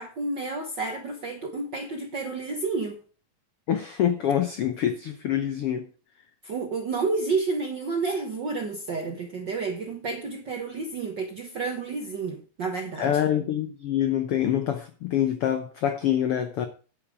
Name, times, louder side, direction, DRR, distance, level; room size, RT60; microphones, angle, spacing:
voice 1, 0.0-3.0 6.4-13.2, right 4 dB, 60° right, 1.2 m, -30 dB
voice 2, 3.7-5.8 13.0-16.7, left 10 dB, 75° left, 1.3 m, -25 dB
10.0 x 8.7 x 4.9 m
omnidirectional pair, 3.8 m